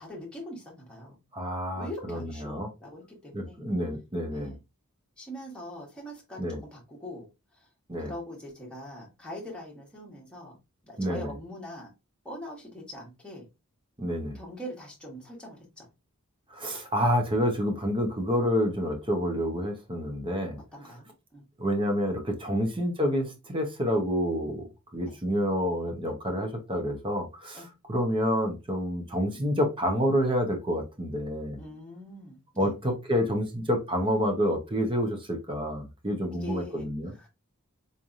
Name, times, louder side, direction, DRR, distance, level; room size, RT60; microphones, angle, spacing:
voice 1, 0.0-1.2 1.8-3.6 4.3-4.6 5.2-7.3 7.5-7.7 8.0-10.6 10.8-11.9 12.2-13.5 14.3-15.9 20.7-21.5 22.5-22.7 25.0-25.2 27.5-27.7 31.6-32.7 36.3-36.9 37.1-37.3, equal, 5° left, 1.3 m, -42 dB
voice 2, 1.3-2.7 3.3-4.5 6.4-6.6 7.9-8.1 11.0-11.3 14.0-14.4 16.5-20.6 21.6-24.7 24.9-31.6 32.6-37.1, equal, 25° right, 0.9 m, -28 dB
4.1 x 3.3 x 2.5 m
head